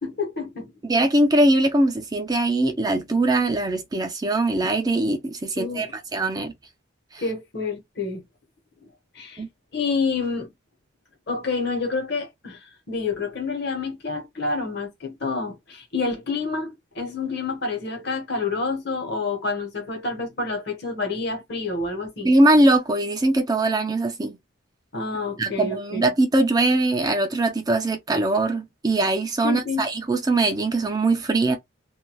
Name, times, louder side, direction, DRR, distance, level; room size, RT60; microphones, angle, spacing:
voice 1, 0.0-0.7 5.5-5.9 7.2-8.2 9.1-9.4 9.7-10.5 11.3-22.3 24.9-26.0 29.4-29.9, left 4 dB, 55° left, 1.2 m, -28 dB
voice 2, 0.9-6.5 9.4-9.5 22.2-24.3 25.4-31.6, right 2 dB, 20° right, 0.4 m, -21 dB
2.6 x 2.2 x 3.0 m
head